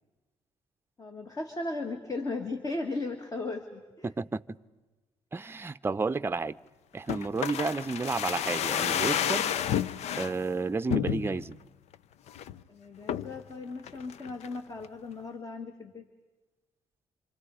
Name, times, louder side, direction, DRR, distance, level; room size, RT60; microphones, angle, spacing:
voice 1, 1.0-4.1 12.7-16.0, left 3 dB, 30° left, 6 dB, 2.0 m, -36 dB
voice 2, 4.0-4.6 5.3-6.6 6.9-9.6 10.2-11.6, right 3 dB, 20° right, 10 dB, 0.7 m, -31 dB
sound 1, 7.1-10.3 10.9-11.5 11.9-12.0 12.3-12.6 13.1-13.4 13.9-14.6 14.8-14.9, left 9 dB, 75° left, 0.6 m, -30 dB
27.5 x 27.5 x 4.9 m, 1.2 s
cardioid pair, 95°, 11 cm